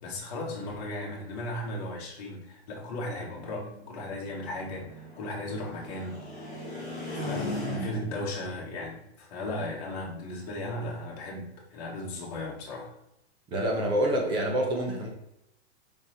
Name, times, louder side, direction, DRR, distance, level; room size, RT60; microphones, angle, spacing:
voice 1, 0.0-6.7 7.1-12.9, left 1 dB, 35° left, -2 dB, 1.9 m, -36 dB
sound 1, 2.8-8.3, left 1 dB, 10° left, 2.6 m, -38 dB
voice 2, 13.5-15.1, right 1 dB, 15° right, 0 dB, 0.9 m, -27 dB
5.5 x 4.5 x 4.4 m, 0.80 s
supercardioid pair, 170°, 32 cm